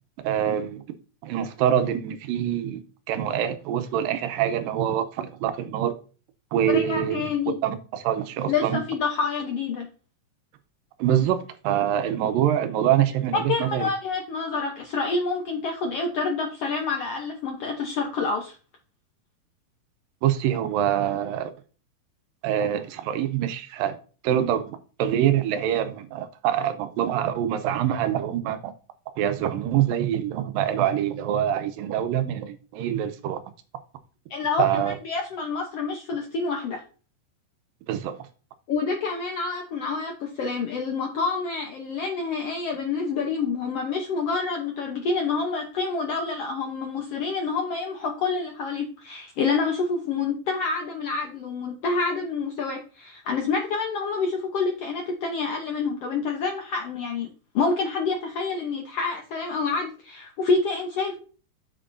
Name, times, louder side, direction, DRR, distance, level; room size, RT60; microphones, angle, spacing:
voice 1, 0.2-0.8 1.2-5.9 6.5-7.3 7.6-8.8 11.0-13.9 20.2-21.5 22.4-24.0 24.2-28.7 29.2-33.4 34.6-34.9 37.9-38.2, right 10 dB, 90° right, 2.5 m, -25 dB
voice 2, 6.7-7.6 8.5-9.9 13.5-18.6 34.3-36.8 38.7-57.3 57.5-61.2, left 4 dB, 70° left, 1.4 m, -27 dB
8.9 x 7.7 x 2.6 m
omnidirectional pair, 3.9 m